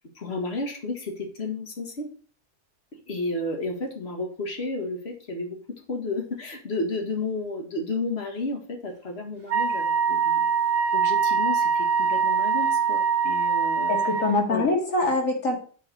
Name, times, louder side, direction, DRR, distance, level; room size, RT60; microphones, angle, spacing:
voice 1, 0.2-2.1 2.9-5.6 5.9-10.5 10.9-13.9 14.5-14.7, left 2 dB, 50° left, 2 dB, 2.0 m, -32 dB
Wind instrument woodwind instrument, 9.5-14.3, right 6 dB, 50° right, 1.2 m, -23 dB
voice 2, 13.9-15.6, left 2 dB, 85° left, 1 dB, 2.4 m, -24 dB
7.8 x 4.9 x 6.1 m, 0.42 s
omnidirectional pair, 1.4 m